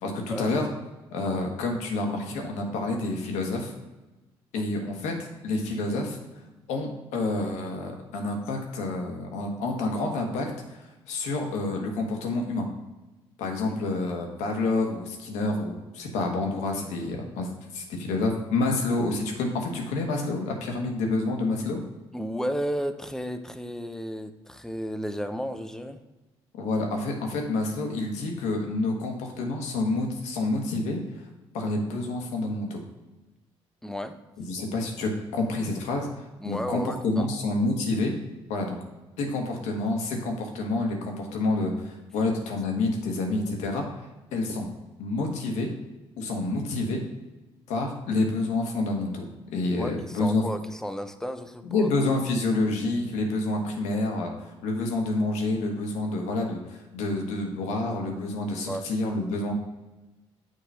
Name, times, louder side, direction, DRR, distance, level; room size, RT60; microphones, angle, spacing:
voice 1, 0.0-0.7 1.1-3.7 4.5-5.1 5.4-6.2 6.7-12.7 13.4-21.8 26.6-31.0 31.5-32.8 34.4-38.1 38.5-38.8 39.2-43.9 44.3-44.7 45.0-45.7 46.2-47.0 47.7-49.3 49.5-50.4 51.6-59.5, left 2 dB, 80° left, 2 dB, 1.2 m, -28 dB
voice 2, 22.1-26.0 33.8-34.2 36.4-37.4 49.8-51.9 58.7-58.8, equal, 5° left, 8 dB, 0.7 m, -33 dB
6.5 x 3.0 x 5.5 m, 1.1 s
supercardioid pair, 60°, 12 cm